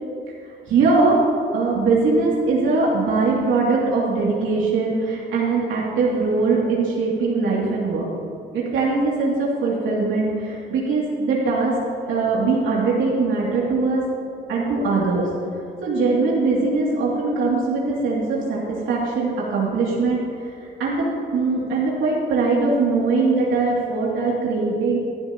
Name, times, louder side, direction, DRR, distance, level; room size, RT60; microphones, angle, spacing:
voice 1, 0.7-1.2 1.5-8.1 8.5-11.8 12.1-14.0 14.5-15.3 15.8-20.2 20.6-21.1 21.3-25.0, right 3 dB, 80° right, -5 dB, 2.6 m, -21 dB
18.0 x 11.5 x 2.9 m, 2.6 s
cardioid pair, 90°, 20 cm